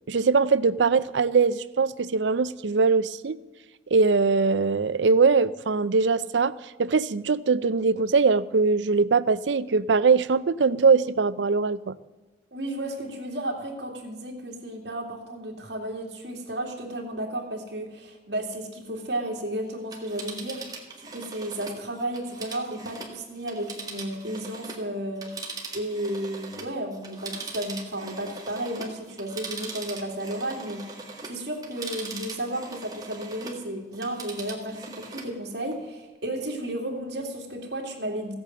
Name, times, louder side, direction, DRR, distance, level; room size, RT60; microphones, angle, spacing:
voice 1, 0.1-3.4 3.9-6.5 6.8-12.0, right 4 dB, 85° right, 17 dB, 0.5 m, -22 dB
voice 2, 12.5-20.6 21.0-25.3 25.7-38.3, right 1 dB, 70° right, 0 dB, 2.7 m, -33 dB
Telephone, 19.8-24.9 25.2-33.6 33.9-35.3 35.7-35.8, right 4 dB, 20° right, 1.8 m, -40 dB
15.5 x 8.7 x 7.7 m, 1.2 s
head